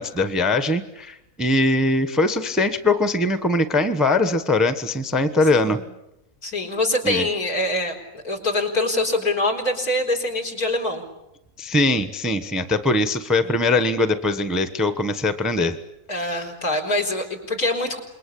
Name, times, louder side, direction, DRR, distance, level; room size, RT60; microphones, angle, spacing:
voice 1, 0.0-5.8 7.0-7.3 11.6-15.8, left 2 dB, ahead, 10 dB, 1.0 m, -21 dB
voice 2, 6.4-11.0 13.4-13.6 16.1-18.0, left 1 dB, 70° left, 1 dB, 4.8 m, -24 dB
27.5 x 22.0 x 8.6 m, 0.87 s
omnidirectional pair, 1.7 m